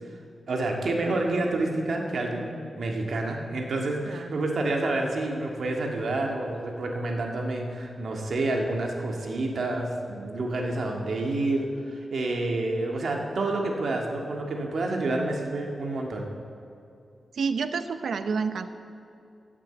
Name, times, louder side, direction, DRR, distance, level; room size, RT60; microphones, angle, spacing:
voice 1, 0.5-16.3, right 2 dB, 65° right, 1 dB, 1.8 m, -28 dB
voice 2, 4.1-4.4 17.4-18.7, right 5 dB, 80° right, 10 dB, 0.7 m, -29 dB
15.5 x 7.5 x 7.8 m, 2.7 s
wide cardioid pair, 155°, 0 cm